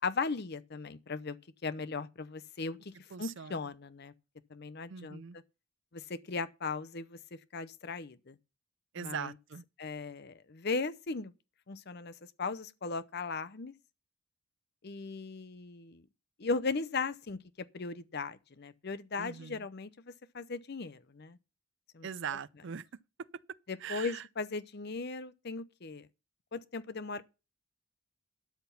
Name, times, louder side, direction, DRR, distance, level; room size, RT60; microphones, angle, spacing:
voice 1, 0.0-1.4 1.6-4.1 4.5-5.2 5.9-8.4 9.0-9.3 9.8-11.3 11.7-13.7 14.8-16.0 16.4-21.4 21.9-22.1 23.7-26.1 26.5-27.2, left 4 dB, 50° left, 0.7 m, -37 dB
voice 2, 3.1-3.6 4.9-5.4 8.9-9.6 19.2-19.7 22.0-22.9 23.2-23.3 23.8-24.2, right 7 dB, 55° right, 0.5 m, -41 dB
12.5 x 5.9 x 5.6 m
head